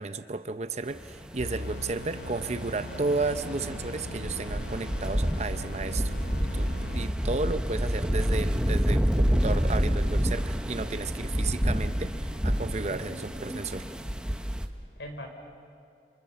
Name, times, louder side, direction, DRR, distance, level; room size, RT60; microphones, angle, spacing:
voice 1, 0.0-6.1 6.4-13.9, right 3 dB, 40° right, 10 dB, 0.7 m, -33 dB
sound 1, 1.0-14.7, equal, 5° right, 1.0 m, -29 dB
sound 2, 1.4-7.4, left 1 dB, 60° left, 2.7 m, -41 dB
voice 2, 11.5-12.2 12.9-13.3 15.0-15.3, equal, 80° left, 4 dB, 4.4 m, -43 dB
28.5 x 28.5 x 6.9 m, 2.4 s
head